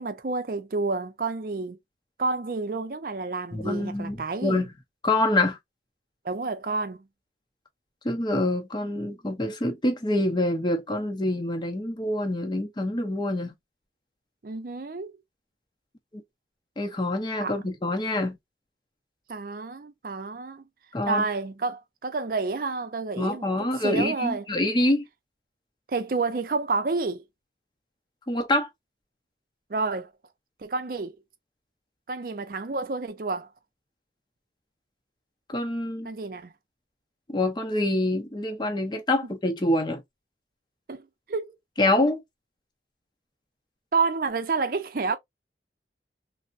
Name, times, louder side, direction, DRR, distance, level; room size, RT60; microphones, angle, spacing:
voice 1, 0.0-1.8 2.2-4.7 6.2-7.1 14.4-15.1 17.4-17.5 19.3-20.6 21.1-23.5 23.8-24.4 25.9-27.2 29.7-30.1 30.6-31.1 32.1-33.5 36.0-36.5 40.9-41.0 41.3-41.5 43.9-45.2, right 4 dB, 50° right, 0.5 m, -29 dB
voice 2, 3.5-4.7 5.0-5.6 8.0-13.5 16.1-16.2 16.8-18.4 20.9-21.3 23.2-25.1 28.3-28.7 35.5-36.1 37.3-40.0 41.8-42.2, left 1 dB, 25° left, 0.6 m, -26 dB
3.3 x 2.0 x 2.5 m
head